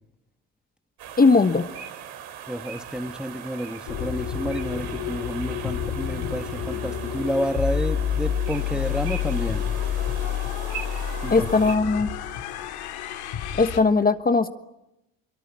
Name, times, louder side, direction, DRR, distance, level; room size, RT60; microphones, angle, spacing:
sound 1, 1.0-11.8, right 9 dB, 70° right, 4.4 m, -39 dB
voice 1, 1.2-1.7 11.3-12.1 13.6-14.5, left 4 dB, 20° left, 9 dB, 1.3 m, -19 dB
voice 2, 2.5-9.6 11.2-11.5, equal, ahead, 8 dB, 1.4 m, -30 dB
sound 2, 3.9-13.8, left 9 dB, 70° left, 3.0 m, -29 dB
23.5 x 23.5 x 9.7 m, 0.94 s
supercardioid pair, 75°, 40 cm